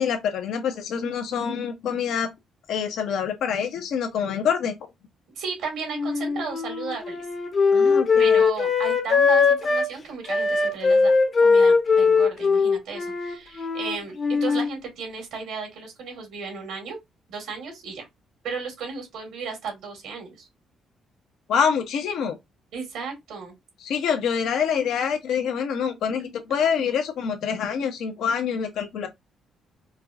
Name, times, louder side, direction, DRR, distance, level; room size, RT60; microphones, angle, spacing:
voice 1, 0.0-2.3 2.7-4.7 7.7-8.4 21.5-22.4 23.8-29.1, left 7 dB, 80° left, 0.9 m, -26 dB
voice 2, 5.4-7.3 8.2-11.1 11.4-17.0 17.3-18.1 18.4-20.5 22.7-23.5, right 5 dB, 85° right, 2.0 m, -34 dB
Wind instrument woodwind instrument, 5.9-9.9 10.3-14.7, left 4 dB, 45° left, 0.8 m, -20 dB
4.5 x 2.4 x 2.6 m
cardioid pair, 90°, 0 cm